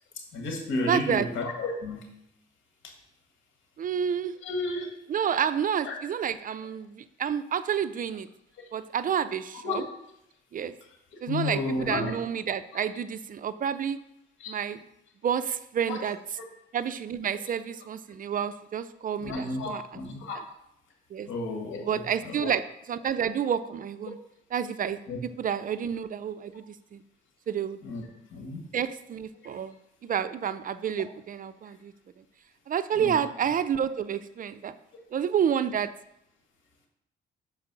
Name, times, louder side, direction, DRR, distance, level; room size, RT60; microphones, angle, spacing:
voice 1, 0.3-2.0 4.4-4.9 5.8-5.9 9.6-9.8 11.3-12.1 14.4-14.5 15.9-16.0 19.2-20.4 21.2-22.5 25.1-25.2 27.8-28.7 33.0-33.2, left 2 dB, 75° left, 2 dB, 1.8 m, -32 dB
voice 2, 0.9-1.3 3.8-4.3 5.1-8.3 8.7-9.8 10.5-10.7 11.2-14.0 14.5-14.8 15.2-16.2 16.7-19.8 21.1-21.3 21.8-22.6 22.9-24.2 24.5-25.0 25.4-27.0 27.5-27.8 28.7-29.7 30.0-31.9 32.7-34.7 35.1-35.9, right 8 dB, 45° right, 13 dB, 0.4 m, -29 dB
6.2 x 4.5 x 6.0 m, 0.79 s
cardioid pair, 90°, 20 cm